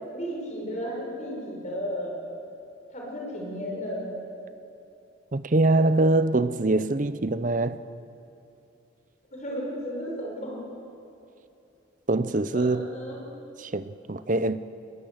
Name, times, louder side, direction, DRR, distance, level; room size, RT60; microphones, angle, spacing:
voice 1, 0.0-2.1 2.9-4.2 9.3-10.6 12.5-13.2, equal, 35° left, 6.2 m, -34 dB
voice 2, 5.3-7.8 12.1-12.9 13.6-14.6, right 2 dB, 40° right, 0.6 m, -23 dB
23.0 x 21.0 x 8.0 m
head